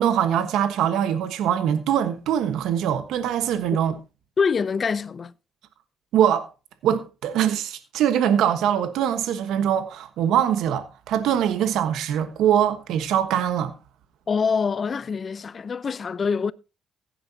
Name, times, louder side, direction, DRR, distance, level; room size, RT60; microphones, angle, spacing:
voice 1, 0.0-4.0 6.1-6.5 6.8-13.7, right 9 dB, 85° right, 1.3 m, -22 dB
voice 2, 4.4-5.3 14.3-16.5, left 5 dB, 40° left, 0.6 m, -25 dB
15.5 x 10.0 x 2.8 m
cardioid pair, 90°, 0 cm